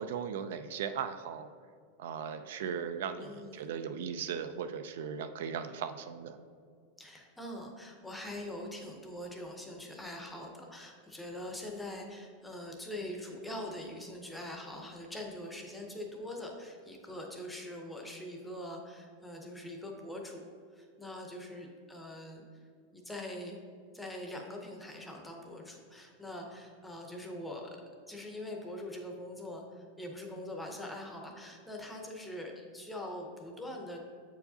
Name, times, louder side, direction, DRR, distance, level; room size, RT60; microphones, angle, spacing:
voice 1, 0.0-1.5 2.0-6.4, right 7 dB, 70° right, 10 dB, 0.3 m, -37 dB
voice 2, 3.2-3.7 7.0-20.4 20.7-22.4 22.9-23.6 23.9-27.8 28.1-34.0, left 1 dB, 5° left, 1 dB, 0.6 m, -43 dB
7.7 x 4.6 x 2.7 m, 2.2 s
supercardioid pair, 170°, 0 cm